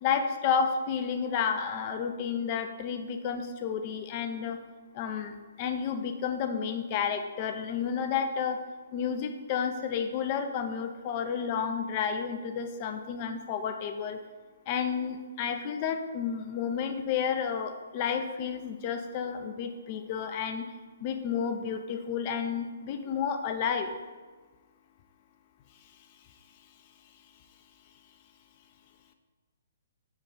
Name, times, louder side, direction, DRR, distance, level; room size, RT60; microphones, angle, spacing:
voice 1, 0.0-4.6 4.9-8.6 8.9-14.2 14.7-20.7 21.0-24.0, left 7 dB, 35° left, 7 dB, 0.4 m, -31 dB
4.7 x 2.3 x 3.8 m, 1.4 s
figure-of-eight pair, 125°, 0 cm